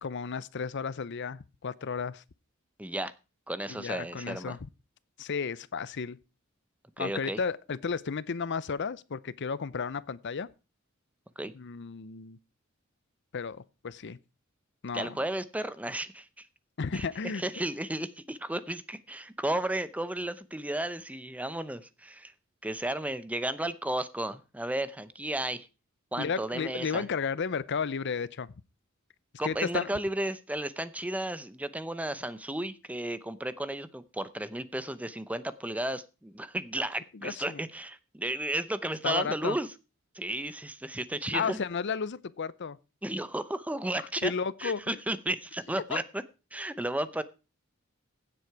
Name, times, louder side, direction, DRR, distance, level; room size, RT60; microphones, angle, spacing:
voice 1, 0.0-2.2 3.7-4.6 5.2-6.2 7.0-10.5 11.6-12.4 13.3-14.2 14.8-15.1 16.8-17.4 26.2-28.5 29.4-29.9 37.2-37.6 39.0-39.6 41.3-42.8 44.2-45.0 45.9-46.0, left 5 dB, 60° left, 0.6 m, -33 dB
voice 2, 2.8-3.1 3.5-4.6 7.0-7.4 11.4-11.5 14.9-16.5 16.9-17.1 17.3-22.3 22.6-25.7 26.1-27.0 29.4-39.7 40.1-41.6 43.0-44.3 44.6-46.2 46.5-47.2, right 1 dB, 5° right, 0.7 m, -33 dB
16.0 x 7.7 x 4.7 m
head